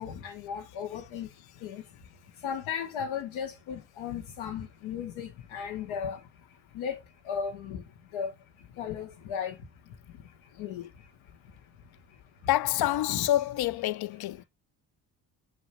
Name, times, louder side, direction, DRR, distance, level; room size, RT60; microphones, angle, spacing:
voice 1, 0.0-12.5 12.8-13.3 13.9-14.4, left 7 dB, 85° left, 1.3 m, -38 dB
voice 2, 12.5-14.4, left 14 dB, 55° left, 0.5 m, -27 dB
7.4 x 3.0 x 4.3 m
supercardioid pair, 60°, 47 cm